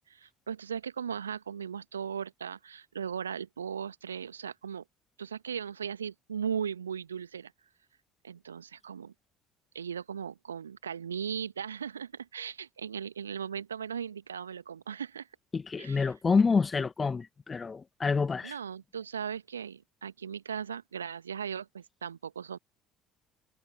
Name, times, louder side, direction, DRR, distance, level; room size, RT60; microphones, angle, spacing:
voice 1, 0.1-4.8 5.2-7.5 8.2-9.1 9.7-15.3 15.8-16.1 18.4-22.6, right 7 dB, 80° right, 1.4 m, -37 dB
voice 2, 15.5-18.5, left 4 dB, 25° left, 1.7 m, -27 dB
figure-of-eight pair, 55°, 0 cm